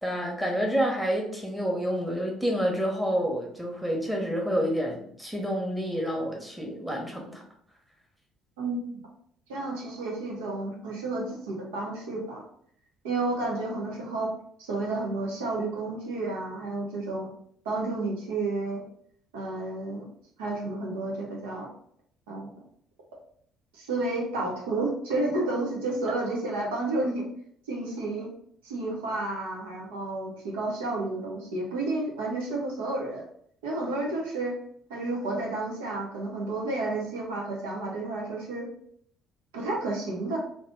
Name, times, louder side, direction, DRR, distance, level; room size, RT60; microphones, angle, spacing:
voice 1, 0.0-7.4, equal, 5° right, -1 dB, 1.3 m, -28 dB
voice 2, 8.6-9.0 9.5-12.4 13.0-14.3 14.6-17.3 17.6-18.8 19.3-20.1 20.4-21.7 22.3-22.6 23.7-27.2 27.7-28.3 28.6-33.2 33.6-34.5 34.9-38.7 39.5-40.4, right 2 dB, 75° right, -2 dB, 0.8 m, -31 dB
3.5 x 2.6 x 3.5 m, 0.64 s
figure-of-eight pair, 50°, 0 cm